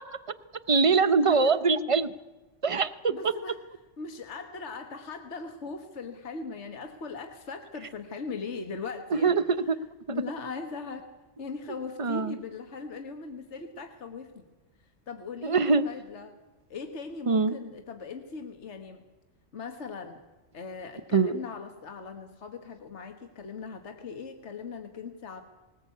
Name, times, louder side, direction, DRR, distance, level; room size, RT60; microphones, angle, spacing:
voice 1, 0.7-2.1 2.6-3.1 9.2-9.4 12.0-12.3 15.4-15.8 17.3-17.6 21.1-21.3, right 4 dB, 30° right, 13 dB, 0.8 m, -23 dB
voice 2, 1.2-1.6 3.1-3.6 4.0-11.1 11.4-14.4 15.1-16.4 16.7-19.0 19.5-20.2 20.5-25.4, left 4 dB, 70° left, 6 dB, 1.7 m, -39 dB
20.0 x 19.5 x 8.4 m, 1.2 s
omnidirectional pair, 1.2 m